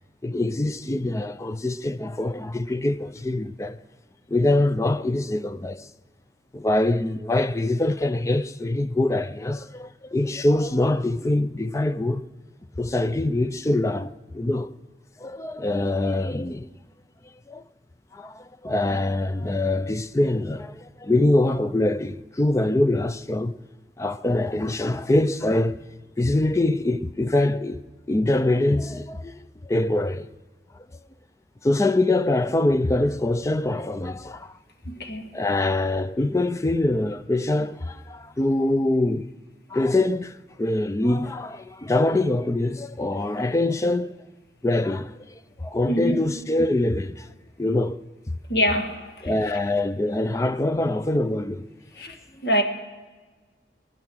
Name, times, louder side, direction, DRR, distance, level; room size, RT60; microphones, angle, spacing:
voice 1, 0.2-3.8 4.3-5.9 6.5-12.2 12.8-14.7 15.2-16.7 17.5-17.6 18.1-23.6 24.0-25.8 26.2-30.3 30.7-30.9 31.6-34.6 35.3-39.3 39.7-44.2 44.6-47.3 47.6-48.4 49.2-51.7 52.3-52.6, left 2 dB, 15° left, 0.4 m, -24 dB
voice 2, 34.9-35.3 45.9-46.2 48.5-49.3 52.0-52.2 52.4-52.6, equal, 70° left, 1.7 m, -24 dB
19.5 x 11.0 x 6.2 m
head